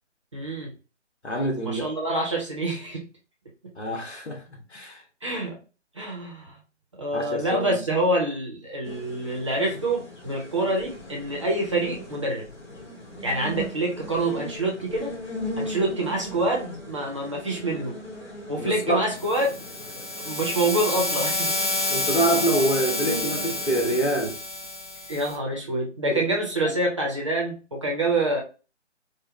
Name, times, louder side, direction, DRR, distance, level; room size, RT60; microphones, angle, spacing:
voice 1, 0.3-0.7 1.6-3.1 3.6-3.7 5.2-5.6 6.0-6.5 7.0-12.5 13.2-15.1 15.6-18.0 18.5-19.6 20.2-21.6 25.1-28.4, right 1 dB, 25° right, 0.7 m, -26 dB
voice 2, 1.2-1.9 3.8-5.0 7.1-7.8 18.6-19.0 21.9-24.4 26.0-26.2, right 1 dB, 65° left, 1.5 m, -26 dB
sound 1, 8.8-24.0, left 1 dB, 25° left, 1.8 m, -39 dB
sound 2, 19.2-25.4, left 2 dB, 40° left, 1.3 m, -29 dB
4.9 x 2.2 x 3.0 m
figure-of-eight pair, 150°, 36 cm